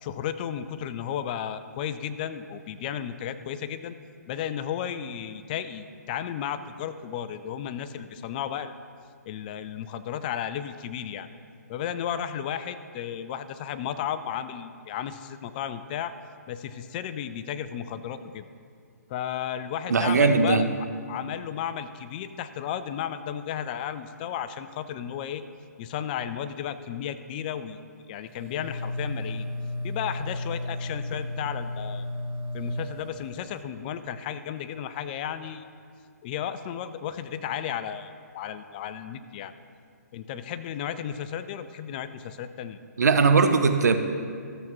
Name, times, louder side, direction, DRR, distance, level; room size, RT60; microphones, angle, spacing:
voice 1, 0.0-3.9 4.3-8.7 9.2-11.3 11.7-16.1 16.5-18.4 19.1-20.7 21.1-25.4 25.8-27.8 28.1-29.5 29.8-32.1 32.5-35.6 36.2-39.5 40.1-42.8, left 9 dB, 30° left, 12 dB, 0.4 m, -34 dB
voice 2, 19.9-20.6 43.0-43.9, right 4 dB, 75° right, 8 dB, 0.8 m, -19 dB
sound 1, 28.3-33.6, left 1 dB, 50° right, 1.4 m, -34 dB
14.0 x 7.2 x 3.1 m, 2.2 s
hypercardioid pair, 135°, 9 cm